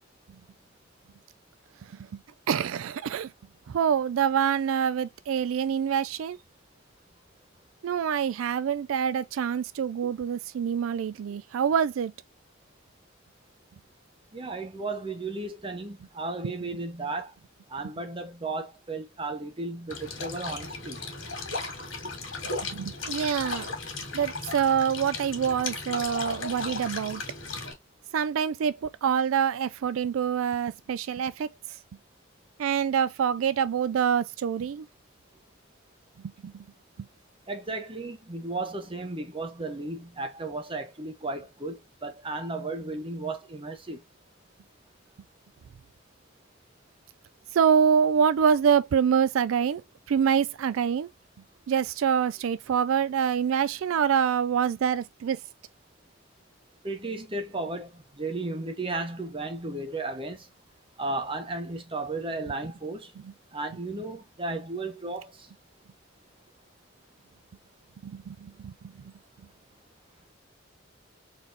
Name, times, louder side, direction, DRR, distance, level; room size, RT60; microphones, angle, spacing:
voice 1, 2.5-3.3 3.7-6.4 7.8-12.1 22.7-23.7 24.1-27.2 28.1-31.5 32.6-34.9 36.4-36.5 47.5-49.8 50.1-51.1 51.7-55.4 68.0-68.7, right 7 dB, 85° right, 0.3 m, -25 dB
voice 2, 14.3-17.3 17.7-21.0 37.5-44.0 56.8-60.5 61.0-63.1 63.5-65.3, right 2 dB, 25° right, 1.0 m, -34 dB
sound 1, 19.9-27.7, left 3 dB, 70° left, 2.2 m, -35 dB
4.1 x 3.5 x 2.7 m
head